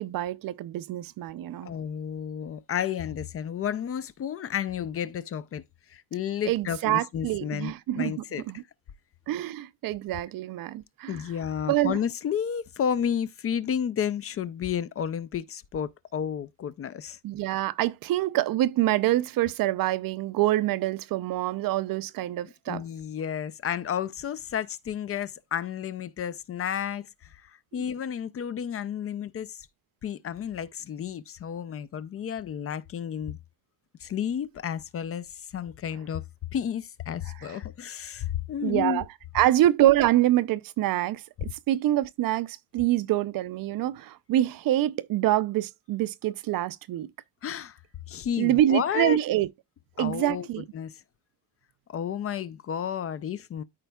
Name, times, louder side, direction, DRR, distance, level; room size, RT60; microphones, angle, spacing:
voice 1, 0.0-1.7 6.5-8.1 8.5-8.6 9.3-11.2 11.7-12.0 17.2-22.8 37.4-37.6 38.6-39.0 39.3-47.1 48.4-49.5 50.0-50.6, right 14 dB, 60° right, 0.5 m, -26 dB
voice 2, 1.6-5.6 5.9-8.4 11.1-17.2 22.7-29.7 30.0-33.4 34.0-36.2 36.5-39.0 47.4-47.8 48.1-49.2 50.0-50.5 50.7-51.0 51.9-53.6, left 8 dB, 40° left, 0.4 m, -32 dB
13.5 x 4.5 x 2.2 m
cardioid pair, 155°, 39 cm